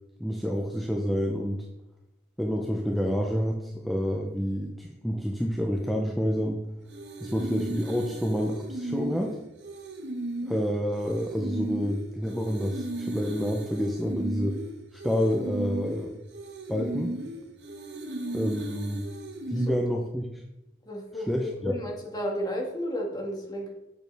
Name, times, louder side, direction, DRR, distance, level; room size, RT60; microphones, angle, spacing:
voice 1, 0.2-1.7 2.4-6.6 7.2-9.4 10.4-14.6 15.0-16.2 16.7-17.2 18.3-19.1 19.5-20.4 21.3-21.8, equal, ahead, 0 dB, 0.6 m, -28 dB
sound 1, 6.9-19.7, right 1 dB, 80° right, 1.2 m, -36 dB
voice 2, 20.8-23.7, equal, 25° left, 0 dB, 1.7 m, -33 dB
8.2 x 6.7 x 3.4 m, 0.95 s
head